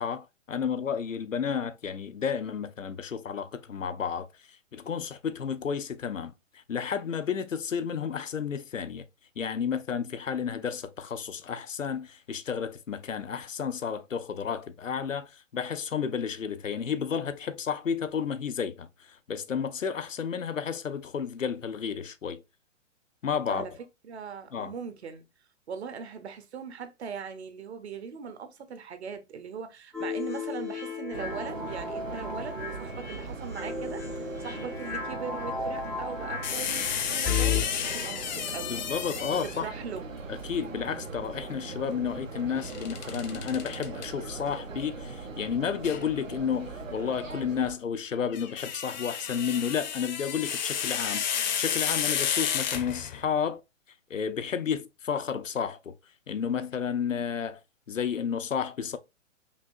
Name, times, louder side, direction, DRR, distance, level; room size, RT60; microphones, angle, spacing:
voice 1, 0.0-9.1 9.4-22.4 23.2-23.7 24.5-24.7 38.7-39.7 40.3-53.6 54.1-55.9 56.3-57.6 57.9-59.0, left 7 dB, 80° left, 0.7 m, -32 dB
voice 2, 24.0-25.2 25.7-38.8 39.4-40.0, right 6 dB, 55° right, 0.9 m, -40 dB
sound 1, 29.9-37.6, left 5 dB, ahead, 0.4 m, -34 dB
sound 2, 31.1-47.8, right 3 dB, 85° right, 0.9 m, -40 dB
sound 3, 36.4-39.7 42.6-44.1 45.8-46.0 48.1-53.3, left 8 dB, 35° left, 0.6 m, -31 dB
5.1 x 2.7 x 2.6 m
figure-of-eight pair, 120°, 38 cm